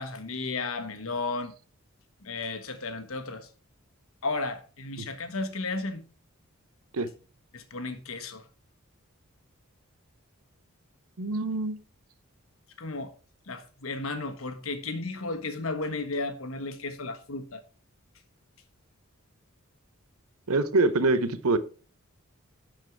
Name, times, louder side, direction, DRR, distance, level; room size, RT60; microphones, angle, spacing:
voice 1, 0.0-1.5 2.2-3.5 4.2-6.0 7.5-8.4 12.8-13.1 13.5-17.6, left 3 dB, 70° left, 1.2 m, -34 dB
voice 2, 11.2-11.8 20.5-21.6, right 2 dB, 85° right, 0.8 m, -25 dB
10.5 x 4.6 x 4.6 m
head